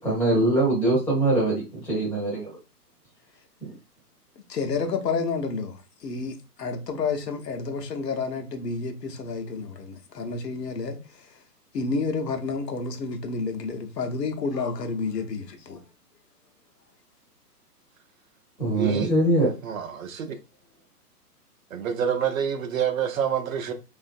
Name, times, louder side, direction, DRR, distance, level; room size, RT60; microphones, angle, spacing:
voice 1, 0.0-2.6 18.6-19.5, right 2 dB, 5° left, 0.6 m, -22 dB
voice 2, 4.4-11.0 11.7-15.8, left 4 dB, 85° left, 0.8 m, -30 dB
voice 3, 18.7-19.1 19.6-20.4 21.7-23.7, right 8 dB, 60° right, 0.6 m, -27 dB
3.3 x 2.5 x 2.4 m
hypercardioid pair, 130°, 48 cm